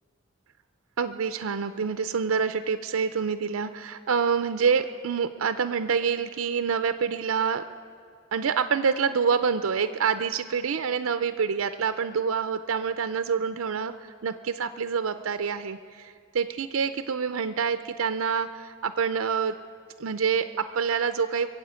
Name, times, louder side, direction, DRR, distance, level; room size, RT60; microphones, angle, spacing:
voice 1, 1.0-7.6 8.3-19.5 20.0-21.5, right 6 dB, 75° right, 10 dB, 0.5 m, -27 dB
23.0 x 7.7 x 8.2 m, 2.1 s
head